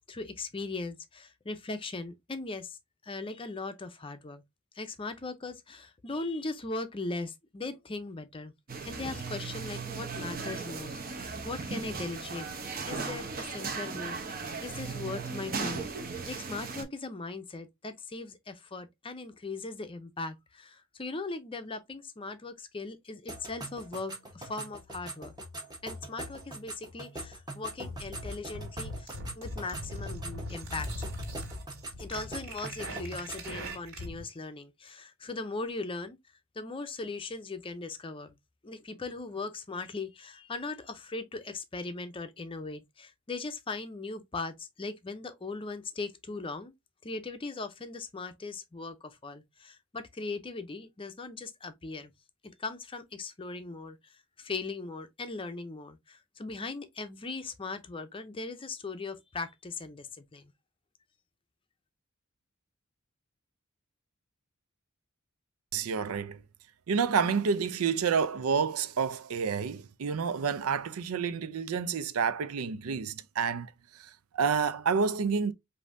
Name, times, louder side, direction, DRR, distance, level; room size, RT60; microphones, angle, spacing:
voice 1, 0.1-2.8 3.0-4.4 4.8-8.5 8.9-12.5 12.9-15.9 16.2-25.3 25.8-30.9 32.0-36.2 36.6-38.3 38.6-46.7 47.0-52.1 52.4-54.0 54.4-60.5, left 3 dB, 25° left, 0.5 m, -39 dB
sound 1, 8.7-16.8, right 4 dB, 40° right, 0.8 m, -37 dB
sound 2, 23.3-33.6, right 1 dB, 20° right, 1.1 m, -43 dB
sound 3, 27.8-34.2, equal, 65° right, 2.1 m, -40 dB
voice 2, 65.7-66.4 66.9-73.7 74.3-75.5, right 6 dB, 90° right, 0.5 m, -29 dB
5.3 x 2.7 x 2.5 m
head